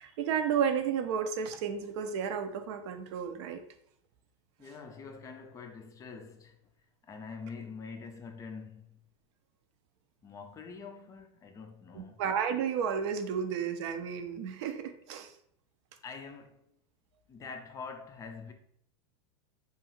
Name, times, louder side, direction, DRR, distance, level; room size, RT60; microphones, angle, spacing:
voice 1, 0.0-3.6 11.9-15.3, right 7 dB, 65° right, 0.4 m, -32 dB
voice 2, 4.6-6.6 7.0-9.0 10.2-12.2 16.0-16.7 17.3-18.5, left 5 dB, 20° left, 0.3 m, -45 dB
2.7 x 2.3 x 3.0 m
supercardioid pair, 125°, 16 cm